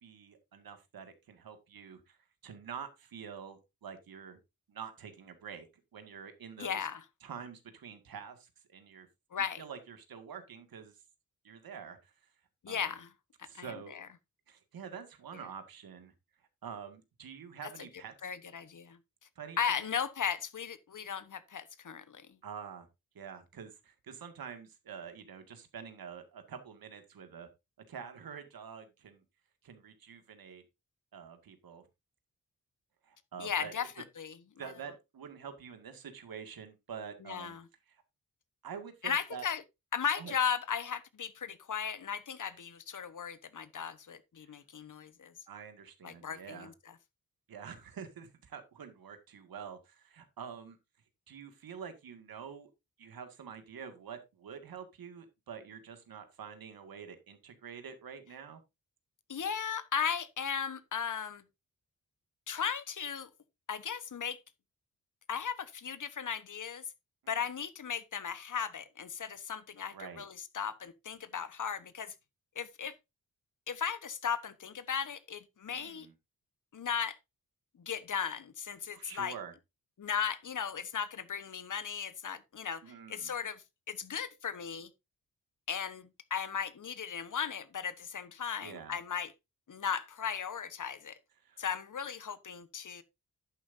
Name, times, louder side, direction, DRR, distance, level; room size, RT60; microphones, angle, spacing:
voice 1, 0.0-2.2 2.4-4.4 4.7-5.7 5.9-6.9 7.2-9.1 9.6-10.9 11.4-12.1 12.7-12.9 13.4-14.0 14.5-16.1 16.6-18.1 19.4-19.9 22.4-22.9 23.1-27.5 27.9-29.2 29.6-30.6 31.1-31.8 33.0-33.8 34.6-37.6 37.9-38.0 38.6-39.5 40.2-40.3 44.4-44.6 45.5-46.7 47.5-50.8 51.3-52.7 53.0-58.6 67.2-67.4 69.9-70.3 75.7-76.1 78.9-79.5 82.8-83.3 88.6-89.0 91.4-91.6, right 7 dB, 75° right, 2.1 m, -47 dB
voice 2, 6.6-7.0 9.3-9.6 12.6-13.1 13.4-14.1 18.2-19.0 19.6-22.3 33.4-33.9 34.2-34.4 34.6-34.7 37.3-37.6 39.0-39.6 39.9-45.3 46.0-46.7 59.3-61.4 62.5-63.3 63.7-64.4 65.3-66.8 67.3-72.1 72.5-72.9 73.7-76.1 76.7-77.2 77.8-79.3 80.0-82.8 83.1-84.9 85.7-89.3 89.7-91.2 91.6-93.0, left 7 dB, 60° left, 1.3 m, -36 dB
11.0 x 8.9 x 2.7 m
cardioid pair, 60°, 35 cm